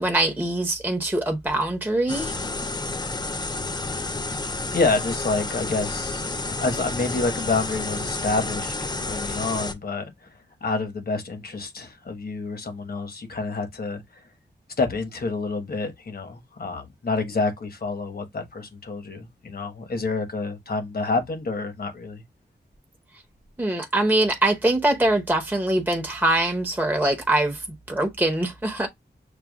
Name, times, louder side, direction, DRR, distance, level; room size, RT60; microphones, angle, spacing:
voice 1, 0.0-2.4 23.6-28.9, right 1 dB, 10° right, 0.9 m, -23 dB
sound 1, 2.1-9.7, left 3 dB, 20° left, 0.5 m, -30 dB
voice 2, 4.7-6.3 6.6-14.2 14.8-22.2, left 3 dB, 55° left, 1.2 m, -28 dB
6.8 x 2.3 x 2.3 m
wide cardioid pair, 95°, 19 cm